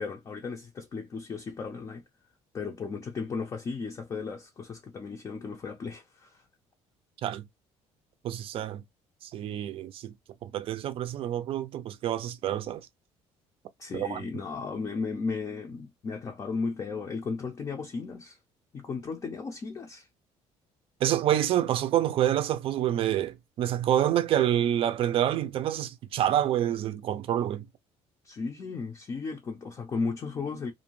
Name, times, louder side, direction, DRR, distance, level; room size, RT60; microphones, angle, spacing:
voice 1, 0.0-2.0 2.5-6.4 13.8-18.4 18.7-20.1 28.2-30.7, left 4 dB, 30° left, 0.5 m, -35 dB
voice 2, 8.2-8.8 9.2-10.1 10.4-12.9 13.9-14.2 21.0-27.7, right 11 dB, 50° right, 0.4 m, -27 dB
2.6 x 2.1 x 3.0 m
cardioid pair, 135°, 12 cm